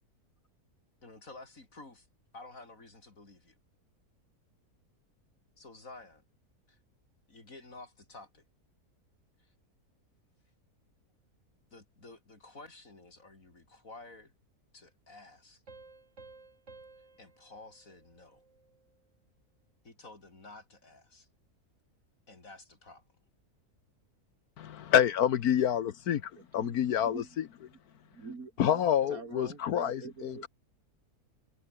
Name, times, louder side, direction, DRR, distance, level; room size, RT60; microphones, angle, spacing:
voice 1, 1.0-2.1 2.3-3.6 5.6-6.2 6.7-6.8 7.3-8.4 9.4-9.5 11.7-14.3 14.7-15.6 17.2-18.4 19.8-21.3 22.3-23.0, left 2 dB, 60° left, 4.9 m, -51 dB
sound 1, 15.7-19.0, right 3 dB, 50° right, 3.4 m, -55 dB
voice 2, 24.6-27.2 28.6-30.5, left 9 dB, 75° left, 1.4 m, -28 dB
voice 3, 26.4-27.4 27.7-27.8 28.1-30.5, right 4 dB, 65° right, 3.3 m, -45 dB
omnidirectional pair, 1.6 m